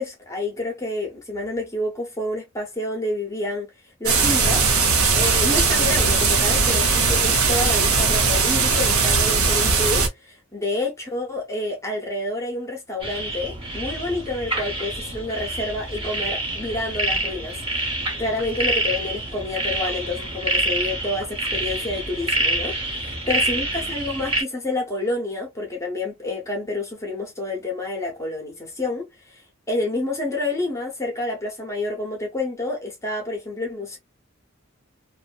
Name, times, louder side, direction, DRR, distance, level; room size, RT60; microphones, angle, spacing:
voice 1, 0.0-3.7 4.0-4.7 5.1-17.6 18.2-34.0, left 2 dB, 15° left, 0.7 m, -28 dB
sound 1, 4.1-10.1, right 4 dB, 80° right, 0.7 m, -19 dB
sound 2, 13.0-24.4, right 1 dB, 25° right, 1.0 m, -27 dB
2.6 x 2.1 x 2.4 m
head